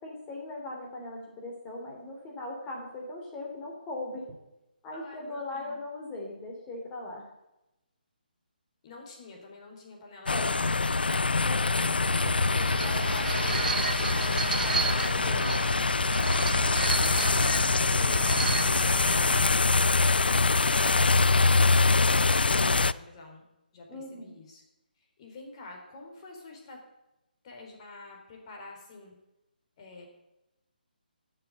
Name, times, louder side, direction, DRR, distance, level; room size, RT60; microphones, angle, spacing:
voice 1, 0.0-4.3 4.8-7.3 10.3-10.7 11.4-15.6 18.0-18.2 23.9-24.3, left 1 dB, 15° left, 0 dB, 3.4 m, -40 dB
voice 2, 4.9-5.8 8.8-10.9 22.7-23.4 23.7-24.6 25.0-26.8 27.4-29.2 29.8-30.1, left 3 dB, 35° left, 1 dB, 4.2 m, -48 dB
sound 1, 10.3-22.9, left 3 dB, 75° left, 0.5 m, -24 dB
sound 2, 12.0-19.5, right 6 dB, 55° right, 0.5 m, -33 dB
12.5 x 7.6 x 9.2 m, 0.94 s
figure-of-eight pair, 145°, 5 cm